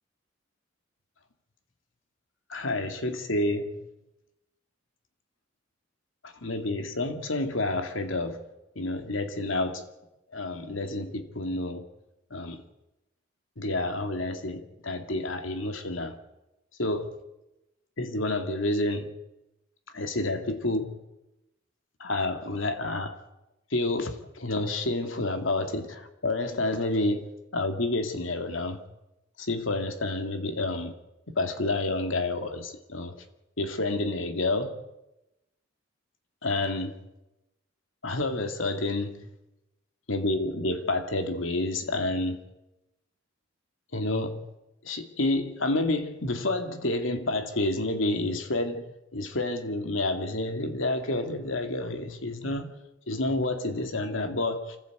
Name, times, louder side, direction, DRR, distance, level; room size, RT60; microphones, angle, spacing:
voice 1, 2.5-3.7 6.2-8.4 8.8-9.8 10.3-11.8 12.3-12.6 13.6-16.2 16.8-17.2 18.0-19.1 19.9-21.0 22.0-23.2 23.7-28.8 29.4-30.9 31.3-33.1 33.6-34.8 36.4-36.9 38.0-39.3 40.1-42.4 43.9-44.4 44.8-52.7 53.1-54.8, left 2 dB, 80° left, 2.4 m, -29 dB
26.0 x 15.0 x 8.1 m
head